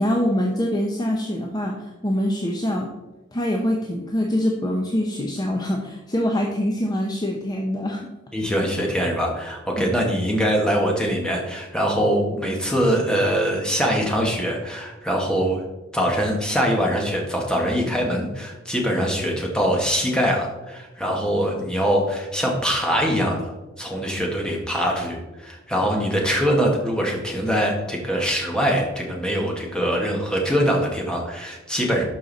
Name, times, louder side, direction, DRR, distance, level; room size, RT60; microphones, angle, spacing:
voice 1, 0.0-2.9 3.3-8.1 9.8-9.9, equal, 20° left, 0 dB, 0.8 m, -24 dB
voice 2, 8.3-15.6 15.9-23.5 23.8-32.0, equal, 5° left, -1 dB, 1.7 m, -23 dB
11.5 x 5.5 x 4.1 m, 1.1 s
head